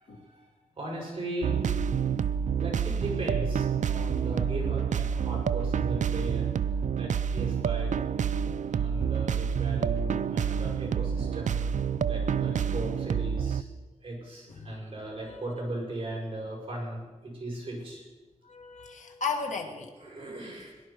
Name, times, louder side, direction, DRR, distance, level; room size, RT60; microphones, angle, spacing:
voice 1, 0.0-0.4 0.8-1.6 2.6-6.5 7.0-7.9 8.6-11.8 12.1-13.6 14.0-18.0 20.0-20.8, right 1 dB, 45° right, -1 dB, 6.3 m, -37 dB
sound 1, 1.4-13.6, right 7 dB, 80° right, 0.5 m, -28 dB
voice 2, 18.4-19.9 20.5-20.7, left 4 dB, 80° left, 3 dB, 1.7 m, -35 dB
18.5 x 11.0 x 5.9 m, 1.3 s
wide cardioid pair, 105°, 12 cm